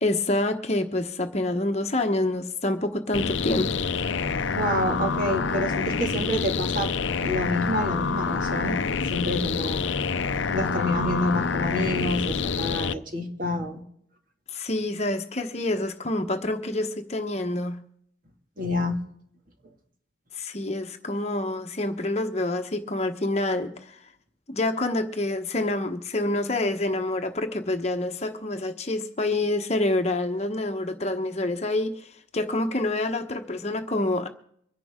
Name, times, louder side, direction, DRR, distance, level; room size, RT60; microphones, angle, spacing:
voice 1, 0.0-3.8 14.5-17.8 20.3-24.0 24.5-34.3, left 2 dB, 35° left, 1.0 m, -27 dB
sound 1, 3.1-12.9, left 5 dB, 80° left, 0.6 m, -27 dB
voice 2, 4.5-6.9 7.2-8.8 9.1-9.9 10.5-13.8 18.6-19.0, left 1 dB, 45° right, 2.2 m, -28 dB
24.5 x 10.5 x 3.7 m
head